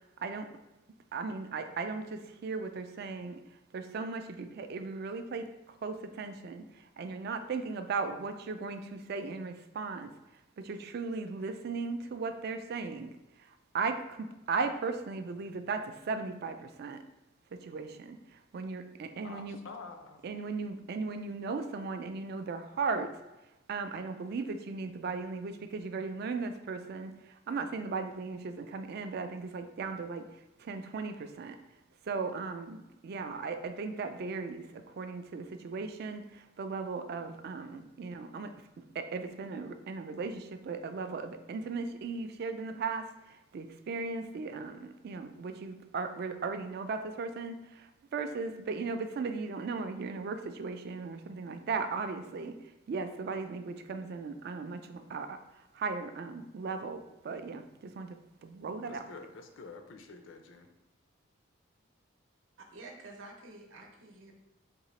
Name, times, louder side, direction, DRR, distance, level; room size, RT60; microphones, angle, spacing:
voice 1, 1.1-3.4 3.7-5.5 5.8-10.1 10.6-13.1 13.7-17.0 17.6-19.6 20.2-23.1 23.7-30.3 30.6-31.6 32.1-38.5 38.9-52.5 52.9-58.2 58.4-59.1, right 4 dB, 50° right, 8 dB, 0.3 m, -37 dB
voice 2, 19.2-20.2 58.9-60.7, left 4 dB, 65° left, 5 dB, 0.4 m, -48 dB
voice 3, 62.6-64.3, right 2 dB, 75° right, 2 dB, 0.7 m, -49 dB
3.7 x 2.8 x 3.1 m, 1.0 s
head